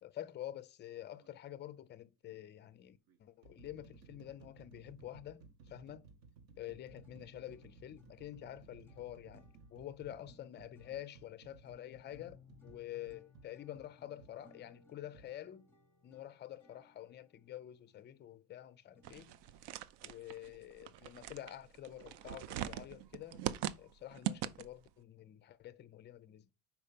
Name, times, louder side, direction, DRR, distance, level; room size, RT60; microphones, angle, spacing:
voice 1, 0.0-6.1 6.6-15.7 16.0-19.3 20.0-23.4 23.8-26.5, left 12 dB, 25° left, 0.4 m, -48 dB
sound 1, 1.1-1.4 2.3-2.4 3.1-14.4 15.1-15.3, right 4 dB, 55° right, 1.0 m, -60 dB
sound 2, 6.7-19.4, left 4 dB, 5° left, 0.9 m, -65 dB
sound 3, 19.0-24.9, right 12 dB, 70° right, 0.6 m, -42 dB
5.5 x 4.6 x 5.1 m
cardioid pair, 155°, 42 cm